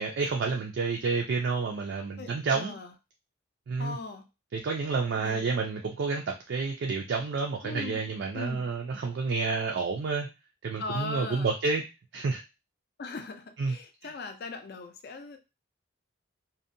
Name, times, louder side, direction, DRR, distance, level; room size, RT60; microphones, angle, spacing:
voice 1, 0.0-2.8 3.7-4.0 4.5-10.3 10.6-11.8 12.1-12.4 13.6-13.7, right 4 dB, 60° right, 1 dB, 0.3 m, -29 dB
voice 2, 2.2-2.9 3.8-4.3 5.2-5.5 7.6-8.7 10.8-11.5 13.0-15.4, left 3 dB, 50° left, 7 dB, 0.4 m, -39 dB
2.6 x 2.1 x 2.5 m, 0.26 s
head